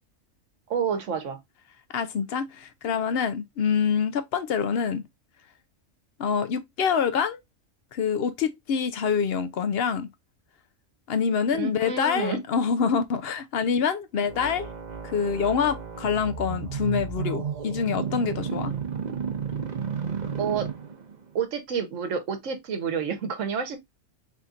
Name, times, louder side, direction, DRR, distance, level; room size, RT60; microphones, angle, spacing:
voice 1, 0.7-1.4 11.5-12.4 20.4-20.7 21.3-23.8, right 6 dB, 75° right, 1.2 m, -29 dB
voice 2, 1.9-5.0 6.2-7.4 7.9-10.1 11.1-14.7 15.0-18.7, left 6 dB, 60° left, 0.7 m, -26 dB
sound 1, 14.3-21.2, right 6 dB, 40° right, 0.8 m, -32 dB
4.1 x 3.6 x 2.4 m
omnidirectional pair, 1.3 m